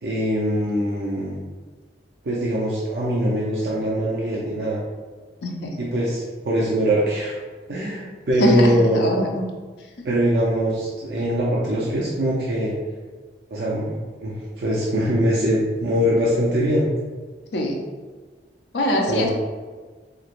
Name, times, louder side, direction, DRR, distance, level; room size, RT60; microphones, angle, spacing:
voice 1, 0.0-1.4 2.2-4.8 5.8-7.4 7.7-9.1 10.0-12.7 13.5-16.8 19.1-19.3, equal, 65° right, -6 dB, 0.5 m, -22 dB
voice 2, 8.4-9.5 17.5-17.8 18.7-19.3, left 1 dB, 80° left, 1 dB, 0.5 m, -22 dB
3.2 x 2.9 x 2.4 m, 1.4 s
head